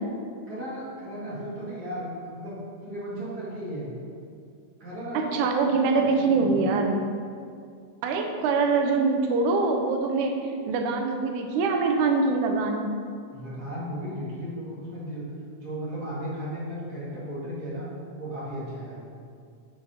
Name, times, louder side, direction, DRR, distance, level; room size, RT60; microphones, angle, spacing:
voice 1, 0.5-2.6 2.8-3.9 4.8-6.7 13.3-15.2 15.6-17.9 18.2-19.0, equal, 40° right, -8 dB, 1.8 m, -35 dB
voice 2, 5.3-7.0 8.0-12.9, right 4 dB, 85° right, 3 dB, 2.2 m, -24 dB
5.6 x 4.7 x 5.0 m, 2.3 s
omnidirectional pair, 3.4 m